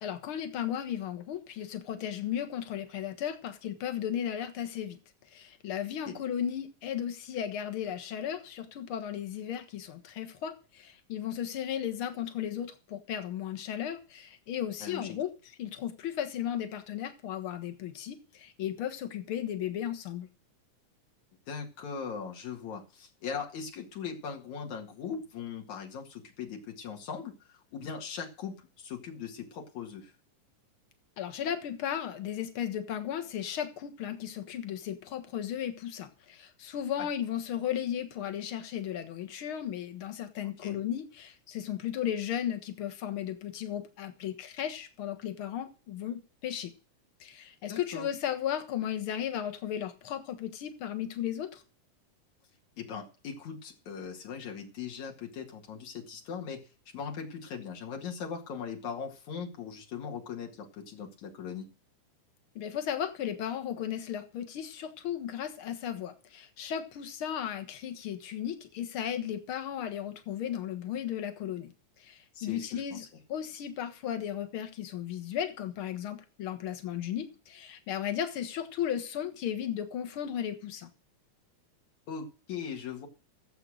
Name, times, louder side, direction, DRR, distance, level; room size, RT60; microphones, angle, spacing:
voice 1, 0.0-5.0 5.3-15.3 15.6-20.3 31.2-46.7 47.2-51.6 62.6-73.0 73.3-80.9, left 10 dB, 50° left, 1.9 m, -35 dB
voice 2, 14.8-15.2 21.5-30.1 37.0-37.1 40.6-40.8 47.7-48.1 52.8-56.6 56.9-61.7 72.3-73.1 82.1-83.1, left 6 dB, 65° left, 3.3 m, -39 dB
14.0 x 8.1 x 6.4 m
omnidirectional pair, 3.6 m